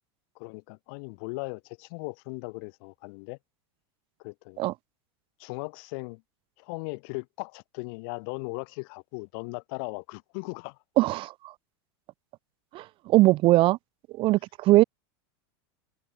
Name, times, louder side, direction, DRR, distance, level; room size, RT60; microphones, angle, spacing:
voice 1, 0.3-3.4 4.2-4.6 5.4-6.2 6.6-10.8, left 33 dB, 60° left, 4.8 m, -38 dB
voice 2, 11.0-11.5 12.7-13.8 14.1-14.8, right 18 dB, 40° right, 0.7 m, -21 dB
supercardioid pair, 140°, 14 cm